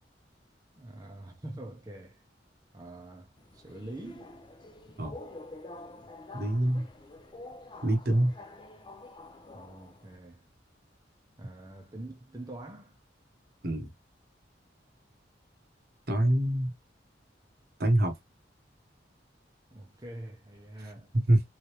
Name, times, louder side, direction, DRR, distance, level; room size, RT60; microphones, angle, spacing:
voice 1, 0.7-2.2 2.7-4.3 9.5-10.4 11.4-13.0 19.7-21.1, right 1 dB, 20° right, 0.7 m, -45 dB
Subway metro underground, 3.4-10.2, left 2 dB, 25° left, 0.6 m, -48 dB
voice 2, 6.3-6.9 7.8-8.3 13.6-13.9 16.1-16.7 17.8-18.1 21.1-21.4, right 1 dB, 55° right, 1.0 m, -25 dB
3.7 x 3.3 x 3.0 m
head